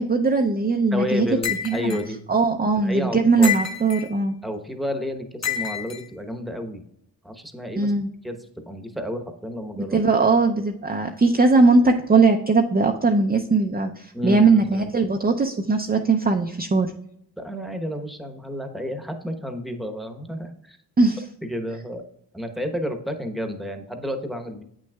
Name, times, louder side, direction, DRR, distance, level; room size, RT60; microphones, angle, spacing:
voice 1, 0.0-1.3 1.6-2.0 2.3-4.3 7.8-8.1 9.8-16.9 21.0-21.2, right 3 dB, 25° right, 3 dB, 0.5 m, -20 dB
voice 2, 0.9-2.2 2.8-3.5 4.4-6.8 7.2-7.9 8.2-10.0 14.1-14.9 17.4-20.8 21.4-22.0 22.3-24.6, left 1 dB, ahead, 5 dB, 1.0 m, -31 dB
sound 1, 1.4-2.0 3.4-4.1 5.4-6.0, left 8 dB, 40° left, 1.0 m, -28 dB
8.3 x 6.2 x 2.3 m, 0.73 s
cardioid pair, 65°, 41 cm